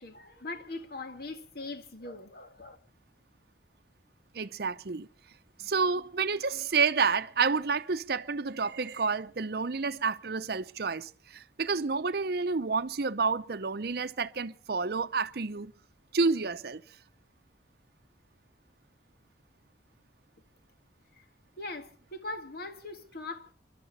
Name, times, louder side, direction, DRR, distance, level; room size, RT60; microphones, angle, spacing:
voice 1, 0.0-2.8 21.1-21.2 21.6-23.5, left 2 dB, 60° left, 1.8 m, -41 dB
voice 2, 4.3-5.1 5.6-15.7 16.1-16.8, right 4 dB, 60° right, 0.7 m, -29 dB
29.0 x 12.0 x 4.1 m
head